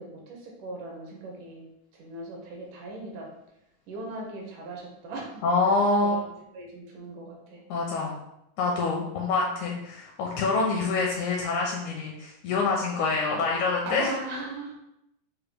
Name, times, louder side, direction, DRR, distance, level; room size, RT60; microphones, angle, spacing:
voice 1, 0.0-1.6 1.9-3.3 3.9-5.4 6.0-7.6 9.0-9.1 13.8-14.7, right 2 dB, 75° right, 0 dB, 2.3 m, -38 dB
voice 2, 5.4-6.2 7.7-8.2 8.6-14.1, left 3 dB, 80° left, -1 dB, 1.8 m, -26 dB
6.6 x 2.2 x 3.4 m, 0.83 s
omnidirectional pair, 3.9 m